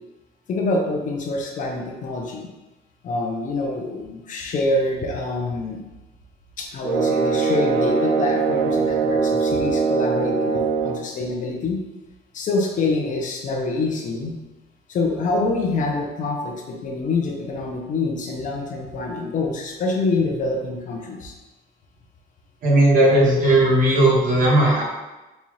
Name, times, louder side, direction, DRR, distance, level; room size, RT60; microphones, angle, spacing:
voice 1, 0.5-2.5 3.0-5.8 6.6-11.8 12.3-14.4 14.9-21.3, left 3 dB, 50° left, 1 dB, 0.6 m, -26 dB
sound 1, 6.8-11.1, right 5 dB, 90° right, 0.4 m, -21 dB
voice 2, 22.6-24.8, right 1 dB, 50° right, -5 dB, 1.3 m, -16 dB
4.1 x 2.3 x 3.1 m, 1.1 s
cardioid pair, 110°, 17 cm